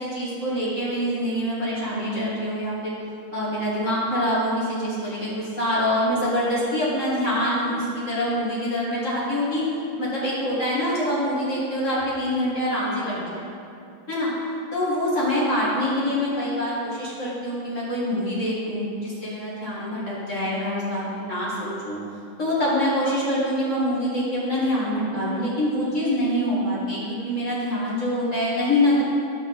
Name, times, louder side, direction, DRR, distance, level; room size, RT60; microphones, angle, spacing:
voice 1, 0.0-3.0 3.3-9.6 10.0-13.4 14.1-14.3 14.7-22.0 22.4-29.0, left 1 dB, 55° left, -8 dB, 0.8 m, -25 dB
15.0 x 6.2 x 4.0 m, 2.5 s
omnidirectional pair, 4.8 m